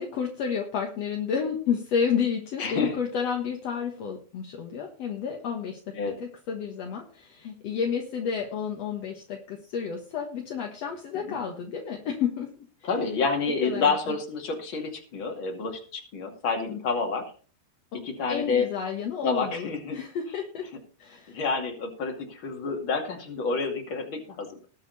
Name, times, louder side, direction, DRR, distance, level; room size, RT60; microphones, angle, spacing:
voice 1, 0.0-12.5 12.8-12.9 13.6-14.1 16.7-16.8 18.3-20.7 21.0-21.4, left 7 dB, 60° left, 2 dB, 1.8 m, -31 dB
voice 2, 2.6-3.0 5.9-6.2 11.2-11.4 12.8-17.2 18.0-18.7 19.2-20.0 21.3-24.6, left 4 dB, 35° left, 3 dB, 2.6 m, -29 dB
20.0 x 6.7 x 4.1 m, 0.39 s
omnidirectional pair, 4.7 m